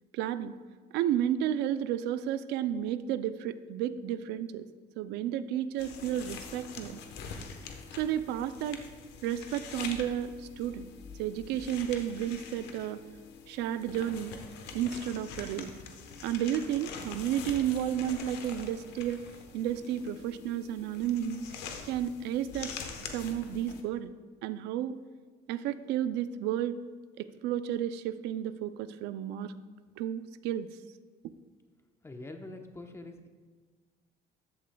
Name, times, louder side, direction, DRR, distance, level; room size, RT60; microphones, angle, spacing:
voice 1, 0.1-0.5 0.9-4.6 5.0-7.0 8.0-8.8 9.2-10.9 11.2-13.0 13.5-14.4 14.7-15.7 16.2-19.2 19.5-21.5 21.9-22.7 23.0-24.1 24.4-24.9 25.5-26.8 27.2-29.5 30.0-30.7, right 10 dB, 90° right, 12 dB, 0.4 m, -32 dB
sound 1, 5.8-23.8, left 5 dB, 90° left, 1.0 m, -45 dB
voice 2, 32.0-33.3, left 2 dB, 15° left, 5 dB, 0.9 m, -44 dB
13.5 x 8.2 x 2.2 m, 1.5 s
cardioid pair, 110°, 17 cm